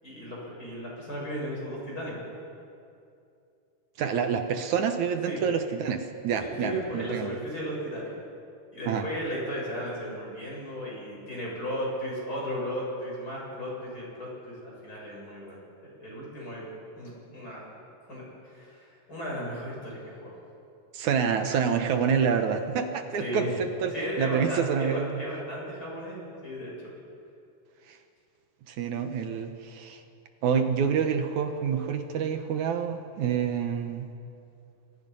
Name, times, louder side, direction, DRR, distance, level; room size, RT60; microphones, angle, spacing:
voice 1, 0.0-2.2 5.3-5.4 6.4-8.1 8.7-16.6 17.0-17.6 18.1-20.3 23.1-23.5 23.9-26.2 26.4-26.9, equal, 20° left, -4 dB, 7.8 m, -35 dB
voice 2, 4.0-7.4 8.9-9.1 20.9-25.2 27.9-28.0 28.7-30.0 30.4-34.1, right 7 dB, 65° right, 7 dB, 2.1 m, -27 dB
29.0 x 23.0 x 5.5 m, 2.6 s
omnidirectional pair, 4.4 m